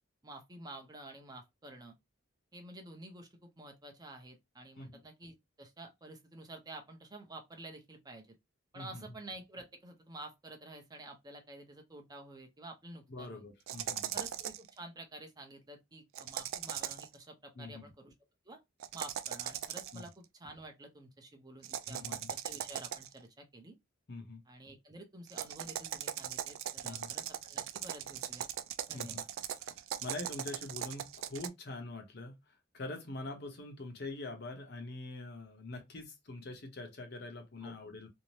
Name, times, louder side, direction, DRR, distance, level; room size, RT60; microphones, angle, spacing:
voice 1, 0.2-1.9 2.5-8.4 8.7-13.4 14.1-18.1 18.5-18.6 18.9-23.8 24.5-28.5 28.9-29.3 37.6-37.8, right 2 dB, 20° right, 0.6 m, -50 dB
voice 2, 13.1-14.2 17.6-17.9 19.9-20.0 21.7-22.3 24.1-24.4 26.8-27.1 28.9-29.2 29.6-29.7 30.0-32.4 32.7-38.1, left 2 dB, 55° left, 0.7 m, -44 dB
sound 1, 13.7-14.7 16.1-17.1 18.8-20.1 21.6-23.2 25.3-31.5, right 10 dB, 80° right, 0.3 m, -39 dB
2.6 x 2.0 x 3.0 m
head